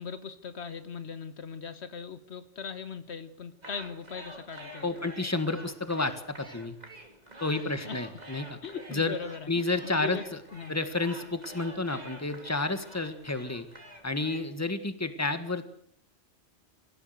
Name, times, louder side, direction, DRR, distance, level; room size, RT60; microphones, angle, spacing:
voice 1, 0.0-5.1 7.5-8.0 8.6-9.5 9.8-10.2 10.5-10.7, left 6 dB, 70° left, 11 dB, 1.4 m, -39 dB
sound 1, 3.6-14.5, right 1 dB, 35° right, 2.8 m, -48 dB
voice 2, 4.8-6.8 7.4-8.6 8.9-9.1 9.5-10.2 10.7-13.7 14.0-15.6, left 3 dB, 15° left, 9 dB, 1.7 m, -30 dB
25.5 x 15.5 x 8.0 m, 0.66 s
omnidirectional pair, 1.2 m